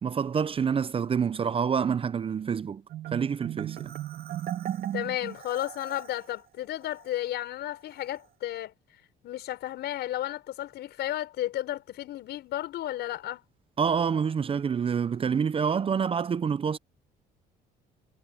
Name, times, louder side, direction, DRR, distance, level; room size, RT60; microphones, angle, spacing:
voice 1, 0.0-2.8 3.1-3.9 13.8-16.8, right 6 dB, 30° right, 0.6 m, -27 dB
Marimba xylophone, 2.9-6.3, right 12 dB, 60° right, 1.9 m, -36 dB
voice 2, 4.9-8.7 9.2-13.4, left 13 dB, 70° left, 6.4 m, -33 dB
cardioid pair, 100°, 18 cm